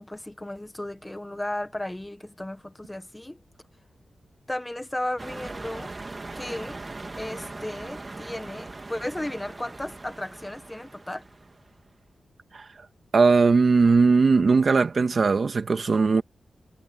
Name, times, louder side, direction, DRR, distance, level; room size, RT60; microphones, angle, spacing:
voice 1, 0.0-3.4 4.5-5.9 6.3-6.8 7.2-11.2, left 1 dB, 15° left, 1.5 m, -34 dB
sound 1, 5.2-11.7, right 2 dB, 30° right, 1.9 m, -40 dB
voice 2, 13.1-16.2, right 4 dB, 50° right, 2.0 m, -19 dB
cardioid pair, 85°, 0 cm